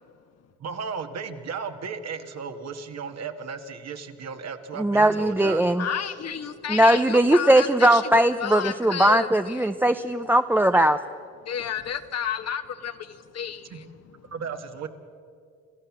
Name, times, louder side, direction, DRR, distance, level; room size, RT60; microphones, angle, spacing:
voice 1, 0.6-5.8 10.7-10.8 13.7-13.8 14.2-14.9, right 6 dB, 60° right, 7 dB, 1.7 m, -35 dB
voice 2, 4.8-5.9 6.7-11.0, right 1 dB, 5° right, 8 dB, 0.5 m, -19 dB
voice 3, 5.8-8.0 8.4-9.3 11.5-13.0 13.3-13.7, left 8 dB, 55° left, 9 dB, 1.3 m, -31 dB
27.5 x 14.5 x 7.3 m, 2.4 s
cardioid pair, 90°, 30 cm